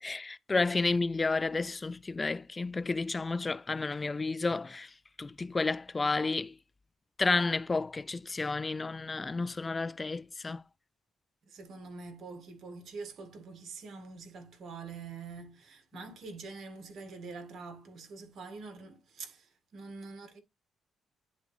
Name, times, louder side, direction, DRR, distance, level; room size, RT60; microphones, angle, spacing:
voice 1, 0.0-4.9 5.2-6.5 7.2-10.6, left 3 dB, 25° left, 0.3 m, -31 dB
voice 2, 11.5-20.4, right 4 dB, 60° right, 1.9 m, -45 dB
10.5 x 3.8 x 3.2 m
cardioid pair, 90°, 0 cm